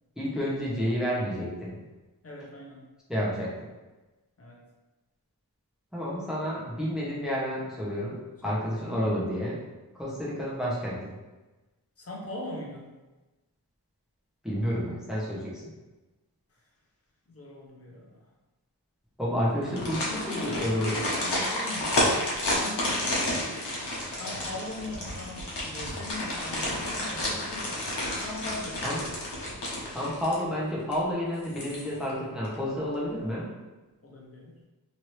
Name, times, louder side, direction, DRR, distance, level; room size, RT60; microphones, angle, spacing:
voice 1, 0.2-1.8 3.1-3.5 5.9-9.6 9.9-11.1 14.4-15.7 19.2-21.0 28.8-29.1 29.9-33.5, equal, ahead, -6 dB, 0.8 m, -30 dB
voice 2, 2.2-2.9 4.4-4.6 8.4-8.5 12.0-12.9 17.3-18.3 20.0-23.6 24.1-27.9 28.1-28.9 34.0-34.6, left 1 dB, 35° left, -2 dB, 0.7 m, -40 dB
sound 1, 19.6-30.6 30.9-31.0 31.4-32.1 32.4-32.6, left 1 dB, 80° left, 1.0 m, -31 dB
3.0 x 2.6 x 3.0 m, 1.1 s
wide cardioid pair, 115°, 40 cm